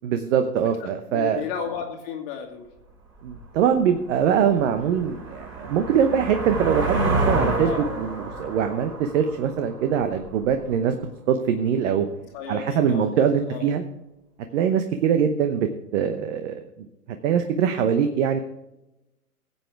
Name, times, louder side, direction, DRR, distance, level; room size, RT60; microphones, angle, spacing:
voice 1, 0.0-1.4 3.2-12.1 12.5-13.8 14.5-16.6 17.2-18.4, right 7 dB, 50° right, 8 dB, 1.0 m, -23 dB
voice 2, 0.8-2.7 7.6-7.9 12.3-13.7, left 7 dB, 40° left, 2 dB, 1.7 m, -34 dB
sound 1, 3.3-3.4 3.9-10.5, right 2 dB, 25° right, 5.0 m, -29 dB
17.0 x 8.1 x 3.4 m, 0.93 s
hypercardioid pair, 115°, 47 cm